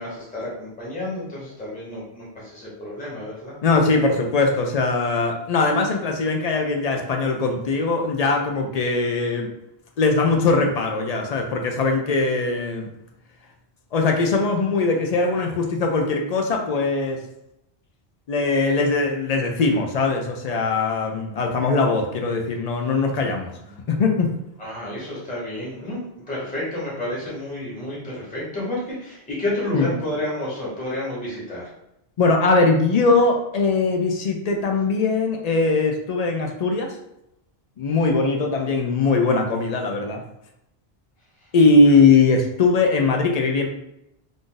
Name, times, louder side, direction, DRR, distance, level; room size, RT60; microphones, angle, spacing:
voice 1, 0.0-3.6 23.7-23.8 24.6-31.7, left 1 dB, 10° left, -7 dB, 1.0 m, -30 dB
voice 2, 3.6-9.5 10.0-12.9 13.9-17.2 18.3-23.5 23.9-24.3 29.7-29.9 32.2-36.9 37.8-40.2 41.5-43.7, left 3 dB, 55° left, 3 dB, 0.4 m, -20 dB
2.5 x 2.5 x 3.7 m, 0.83 s
omnidirectional pair, 1.1 m